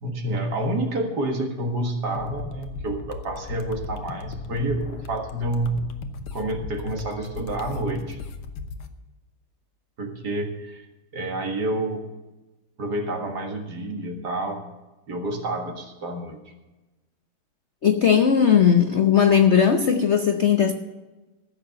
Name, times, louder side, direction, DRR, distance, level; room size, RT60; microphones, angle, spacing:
voice 1, 0.0-5.8 6.3-8.2 10.0-10.8 11.1-12.0 12.8-14.6 15.1-16.4, right 1 dB, 55° right, 4 dB, 2.2 m, -28 dB
sound 1, 2.1-8.9, left 4 dB, 85° left, 1.9 m, -37 dB
voice 2, 17.8-20.7, left 8 dB, 65° left, 6 dB, 0.7 m, -18 dB
15.0 x 6.8 x 7.6 m, 1.1 s
omnidirectional pair, 2.3 m